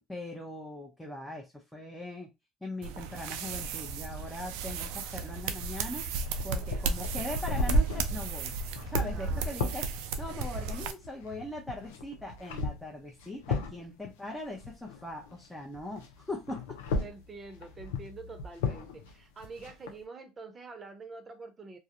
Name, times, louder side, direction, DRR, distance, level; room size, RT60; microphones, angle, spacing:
voice 1, 0.1-2.3 2.6-6.1 6.4-8.5 8.9-9.9 10.2-16.8, left 1 dB, 5° left, 0.7 m, -40 dB
sound 1, 2.8-10.9, right 4 dB, 75° right, 0.3 m, -35 dB
sound 2, 6.2-15.4 15.7-19.9, left 2 dB, 85° left, 0.5 m, -35 dB
voice 2, 9.1-9.6 17.0-21.8, right 3 dB, 30° right, 0.7 m, -46 dB
2.3 x 2.0 x 2.8 m
hypercardioid pair, 75°, 0 cm